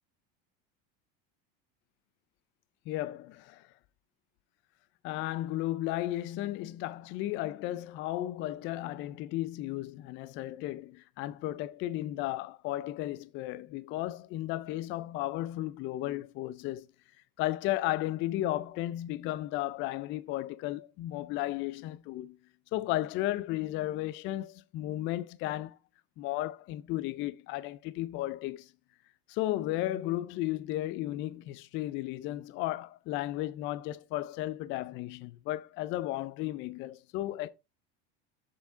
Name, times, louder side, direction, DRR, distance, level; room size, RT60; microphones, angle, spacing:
voice 1, 2.9-3.7 5.0-16.9 17.4-22.4 22.7-25.8 26.2-28.7 29.3-37.5, left 15 dB, 40° left, 0.4 m, -34 dB
7.2 x 4.6 x 3.8 m
cardioid pair, 150°, 31 cm